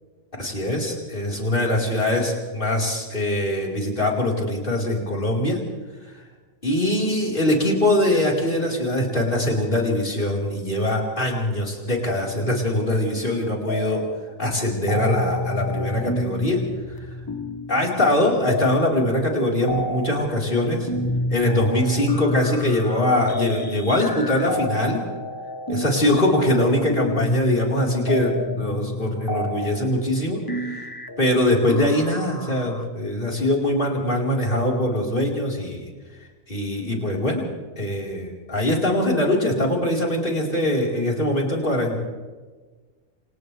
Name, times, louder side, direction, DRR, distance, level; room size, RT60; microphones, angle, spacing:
voice 1, 0.4-5.6 6.6-14.0 14.4-16.6 17.0-17.1 17.7-20.9 21.3-25.0 25.7-30.4 30.7-30.8 31.2-35.9 36.5-37.4 37.8-42.0, left 1 dB, 30° left, -2 dB, 4.9 m, -22 dB
sound 1, 13.7-14.3 14.6-32.8, left 2 dB, 15° left, 1.0 m, -29 dB
29.0 x 27.5 x 3.5 m, 1.4 s
omnidirectional pair, 1.7 m